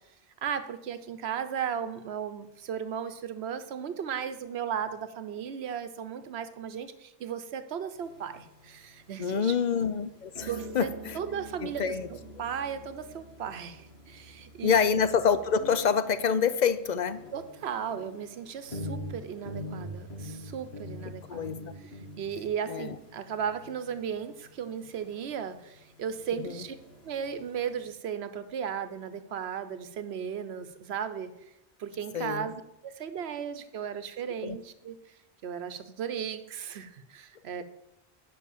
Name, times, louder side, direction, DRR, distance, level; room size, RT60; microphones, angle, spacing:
voice 1, 0.4-9.5 10.5-14.8 17.3-26.8 27.0-31.3 31.8-35.0 35.4-37.6, right 8 dB, 70° right, 11 dB, 1.0 m, -36 dB
sound 1, 8.0-27.9, equal, 65° left, 2.3 m, -45 dB
voice 2, 9.2-10.5 10.7-10.9 11.6-12.1 14.6-17.2 21.3-21.6 22.7-23.0 26.4-26.6 32.1-32.5 34.4-34.6, left 7 dB, 50° left, 13 dB, 0.6 m, -26 dB
9.9 x 5.5 x 7.2 m, 0.89 s
omnidirectional pair, 1.1 m